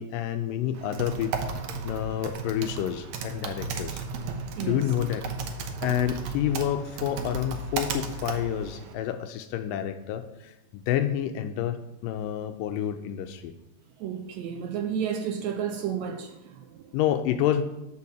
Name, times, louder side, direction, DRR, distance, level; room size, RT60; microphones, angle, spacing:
voice 1, 0.0-1.4 1.8-4.0 4.6-5.2 5.8-13.5 16.9-17.6, left 10 dB, 85° left, 2.2 m, -29 dB
Typing, 0.7-8.9, right 4 dB, 70° right, 1.9 m, -35 dB
voice 2, 4.5-4.9 14.0-17.0, right 8 dB, 90° right, 1.5 m, -32 dB
9.5 x 5.5 x 6.7 m
omnidirectional pair, 4.0 m